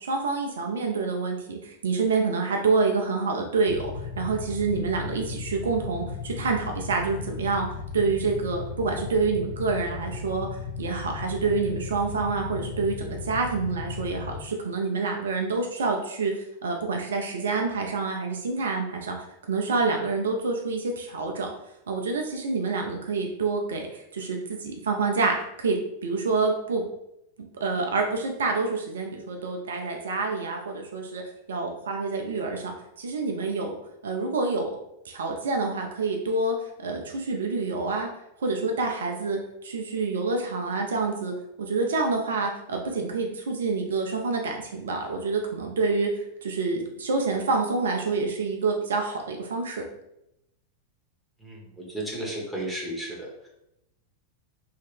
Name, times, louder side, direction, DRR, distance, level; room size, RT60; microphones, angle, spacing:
voice 1, 0.1-3.9 4.2-7.7 7.9-10.5 10.8-21.5 21.9-26.8 27.6-31.2 31.5-33.7 34.0-34.7 35.1-38.1 38.4-49.8, right 4 dB, 65° right, 2 dB, 0.4 m, -27 dB
Motorcycle / Idling, 3.7-14.4, left 5 dB, 80° left, 1.5 m, -36 dB
voice 2, 51.4-53.5, right 1 dB, ahead, -3 dB, 1.2 m, -34 dB
3.2 x 2.8 x 3.3 m, 0.83 s
figure-of-eight pair, 90°, 0 cm